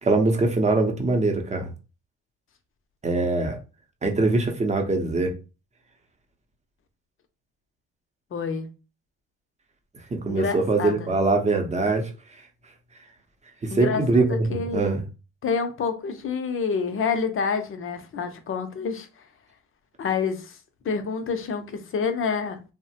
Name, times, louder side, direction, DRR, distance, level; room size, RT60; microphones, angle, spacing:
voice 1, 0.0-1.7 3.0-3.6 4.0-5.3 10.1-12.1 13.6-15.0, right 3 dB, 25° right, 0.7 m, -22 dB
voice 2, 8.3-8.7 10.3-11.1 13.7-14.9 15.4-19.1 20.0-20.6 20.8-22.6, left 5 dB, 45° left, 0.6 m, -28 dB
3.1 x 2.1 x 2.8 m
cardioid pair, 90°, 30 cm